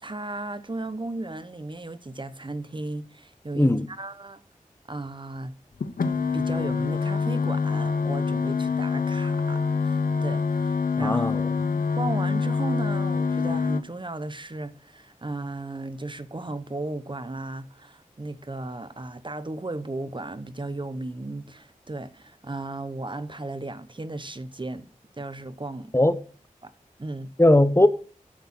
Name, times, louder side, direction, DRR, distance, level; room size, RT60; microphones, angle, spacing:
voice 1, 0.0-4.4 4.9-5.6 6.3-11.3 11.6-24.9 25.2-25.9 26.6-26.7 27.0-27.4, right 2 dB, 35° right, 0.9 m, -35 dB
voice 2, 3.5-3.9 11.0-11.4 25.9-26.2 27.4-27.9, left 1 dB, 20° left, 0.8 m, -18 dB
sound 1, 5.8-13.8, left 5 dB, 80° left, 0.8 m, -25 dB
8.5 x 6.5 x 6.0 m
cardioid pair, 45°, 14 cm